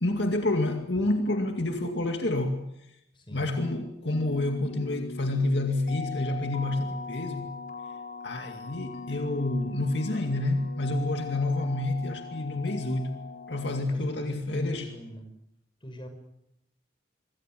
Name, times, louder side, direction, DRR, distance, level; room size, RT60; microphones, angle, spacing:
voice 1, 0.0-2.6 3.3-7.5 8.2-13.1 13.5-14.9, left 2 dB, 65° left, 2.3 m, -28 dB
voice 2, 3.1-3.5 13.8-15.3 15.8-16.1, equal, 25° left, 5.9 m, -41 dB
sound 1, 4.1-13.8, left 4 dB, 50° left, 4.2 m, -40 dB
25.5 x 23.0 x 7.7 m
head